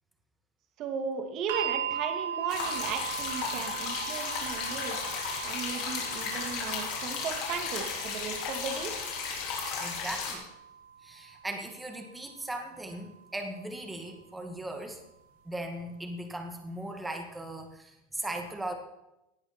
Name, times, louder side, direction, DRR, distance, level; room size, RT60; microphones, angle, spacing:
voice 1, 0.8-5.0 5.4-8.9, right 6 dB, 35° right, 5 dB, 2.4 m, -36 dB
sound 1, 1.5-13.6 14.6-14.7, right 8 dB, 75° right, 3.2 m, -39 dB
sound 2, 2.5-10.3, left 5 dB, 45° left, 4.9 m, -34 dB
voice 2, 9.8-10.5 11.0-15.0 15.5-18.7, right 1 dB, 5° right, 4 dB, 2.1 m, -38 dB
18.5 x 12.5 x 4.5 m, 0.90 s
supercardioid pair, 155°, 0 cm